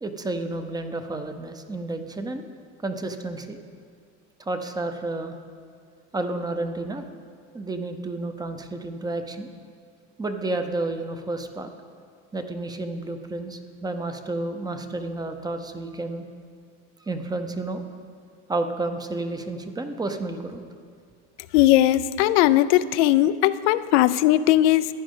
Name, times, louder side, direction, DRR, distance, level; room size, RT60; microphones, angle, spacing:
voice 1, 0.0-2.5 2.8-3.6 4.4-5.4 6.1-7.0 7.5-9.5 10.2-11.7 12.3-16.3 17.1-17.9 18.5-20.6, right 2 dB, 10° right, 7 dB, 0.6 m, -31 dB
voice 2, 21.5-24.9, left 14 dB, 90° left, 14 dB, 0.5 m, -19 dB
15.0 x 10.0 x 3.7 m, 2.2 s
cardioid pair, 140°, 34 cm